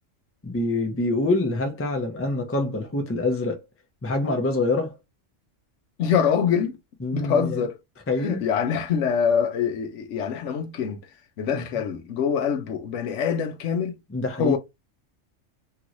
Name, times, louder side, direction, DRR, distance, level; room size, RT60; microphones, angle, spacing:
voice 1, 0.4-3.6 4.0-5.0 7.0-7.7 8.1-8.4 11.5-11.6 14.1-14.6, left 2 dB, 15° left, 0.4 m, -25 dB
voice 2, 6.0-6.8 7.1-7.8 8.2-11.0 11.4-14.0 14.4-14.6, left 7 dB, 70° left, 0.9 m, -24 dB
3.0 x 3.0 x 2.5 m
omnidirectional pair, 1.3 m